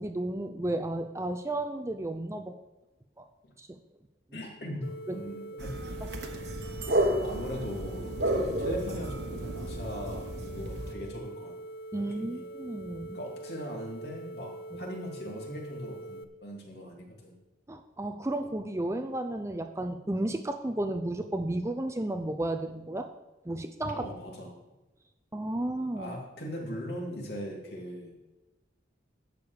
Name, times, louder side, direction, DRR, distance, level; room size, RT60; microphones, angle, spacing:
voice 1, 0.0-2.5 3.2-3.3 3.6-3.8 5.1-5.2 6.0-6.1 11.9-13.2 14.7-14.8 17.7-23.1 23.5-24.1 25.3-26.1, right 1 dB, 15° right, 7 dB, 0.5 m, -33 dB
voice 2, 4.3-5.7 7.2-11.5 12.0-12.5 13.1-14.5 14.8-17.3 24.0-24.5 25.9-28.1, equal, 60° left, -1 dB, 2.8 m, -40 dB
sound 1, 4.8-16.2, right 1 dB, 85° left, 0.7 m, -43 dB
sound 2, 5.6-10.9, right 1 dB, 65° right, 1.2 m, -32 dB
12.0 x 5.0 x 8.2 m, 1.1 s
head